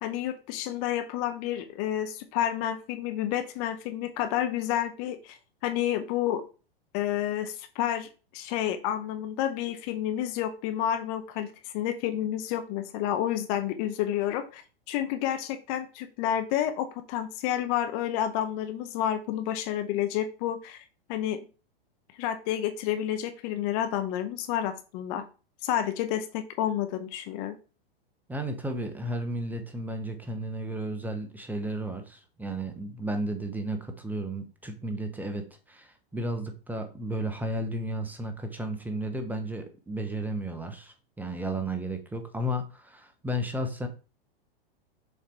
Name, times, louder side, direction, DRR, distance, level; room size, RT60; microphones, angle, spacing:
voice 1, 0.0-6.4 6.9-21.4 22.2-25.2 25.6-27.5, left 11 dB, 40° left, 9 dB, 0.7 m, -30 dB
voice 2, 28.3-35.4 35.7-43.9, right 1 dB, 5° right, 6 dB, 0.9 m, -33 dB
6.7 x 4.2 x 3.3 m, 0.34 s
hypercardioid pair, 105°, 30 cm